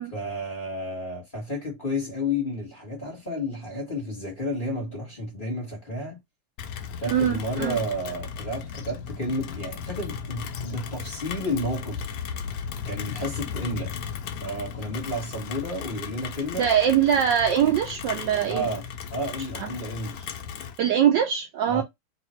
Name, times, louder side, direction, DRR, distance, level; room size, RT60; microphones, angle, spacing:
voice 1, 0.1-6.2 7.0-12.1 12.8-14.0 14.4-16.7 18.5-20.3 21.7-21.8, left 1 dB, 25° left, 1.3 m, -31 dB
Rain, 6.6-20.8, left 7 dB, 75° left, 0.9 m, -36 dB
voice 2, 7.1-7.8 16.6-18.7 19.6-19.7 20.8-21.8, right 9 dB, 75° right, 1.1 m, -22 dB
3.3 x 2.5 x 4.2 m
omnidirectional pair, 2.4 m